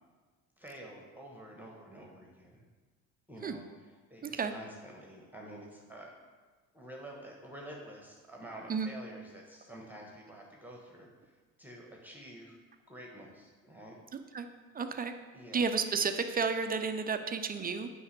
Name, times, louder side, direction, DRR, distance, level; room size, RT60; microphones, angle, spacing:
voice 1, 0.6-2.6 3.3-6.1 6.7-11.3 11.6-12.6 12.9-14.0 15.3-15.7, right 1 dB, 5° right, -1 dB, 1.1 m, -49 dB
voice 2, 4.2-4.5 8.7-8.9 14.1-14.5 14.7-15.1 15.5-17.9, right 5 dB, 20° right, 8 dB, 0.5 m, -32 dB
8.4 x 4.8 x 3.3 m, 1.4 s
hypercardioid pair, 60°, 40 cm